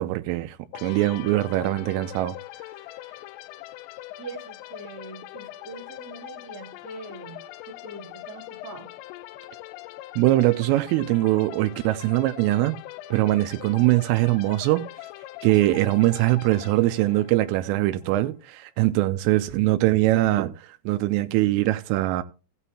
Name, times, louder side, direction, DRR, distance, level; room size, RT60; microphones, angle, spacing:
voice 1, 0.0-2.3 10.2-12.8 13.1-14.9 15.4-20.5 20.9-22.2, right 17 dB, 90° right, 3.3 m, -22 dB
sound 1, 0.7-18.3, left 15 dB, 90° left, 3.3 m, -42 dB
voice 2, 4.2-8.9, right 3 dB, 35° right, 1.5 m, -42 dB
16.0 x 9.1 x 2.8 m
omnidirectional pair, 5.7 m